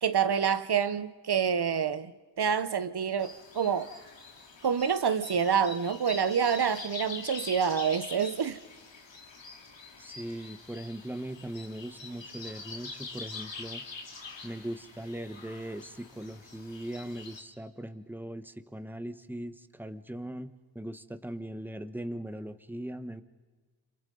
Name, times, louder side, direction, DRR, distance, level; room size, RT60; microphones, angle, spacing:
voice 1, 0.0-2.1 2.4-3.9 4.6-8.6, right 7 dB, 65° right, 0.9 m, -27 dB
sound 1, 3.2-17.4, left 4 dB, 90° left, 3.0 m, -45 dB
voice 2, 10.0-13.8 14.4-23.2, right 1 dB, 5° right, 1.2 m, -40 dB
30.0 x 27.5 x 5.4 m
wide cardioid pair, 80°, 43 cm